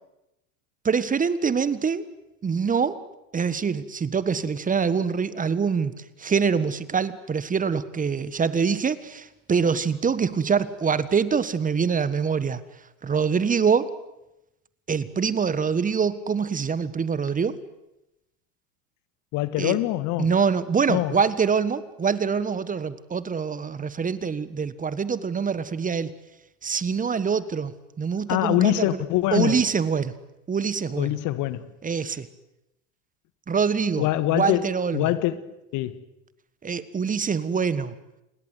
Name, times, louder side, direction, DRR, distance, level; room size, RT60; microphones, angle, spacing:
voice 1, 0.8-2.0 2.4-3.0 3.3-5.9 6.2-12.6 13.0-13.9 14.9-17.6 19.6-19.8 20.2-26.1 26.6-27.7 28.0-29.0 29.3-30.1 30.5-31.2 31.8-32.3 33.5-35.1 36.6-37.9, right 6 dB, 20° right, 1.5 m, -25 dB
voice 2, 19.3-20.3 20.9-21.2 28.3-29.7 31.0-31.7 34.0-34.7 34.9-35.4 35.7-36.0, left 15 dB, 50° left, 1.6 m, -24 dB
29.5 x 21.0 x 8.2 m
hypercardioid pair, 85°, 39 cm